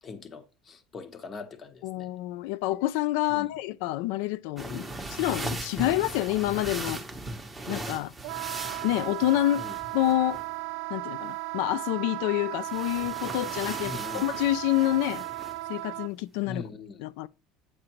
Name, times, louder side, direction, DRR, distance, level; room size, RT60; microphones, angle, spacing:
voice 1, 0.0-2.1 3.3-3.5 4.7-5.1 9.6-9.8 13.8-14.3 16.5-17.0, left 4 dB, 25° left, 1.0 m, -41 dB
voice 2, 1.8-4.8 5.2-7.0 7.7-8.1 8.8-9.6 9.9-10.4 10.9-15.2 15.7-16.6 17.0-17.3, left 15 dB, 75° left, 0.3 m, -27 dB
sound 1, 4.6-10.5 12.6-15.6, right 2 dB, 5° right, 0.9 m, -38 dB
Wind instrument woodwind instrument, 8.2-16.1, right 24 dB, 75° right, 0.3 m, -36 dB
8.5 x 5.0 x 3.0 m
cardioid pair, 160°, 0 cm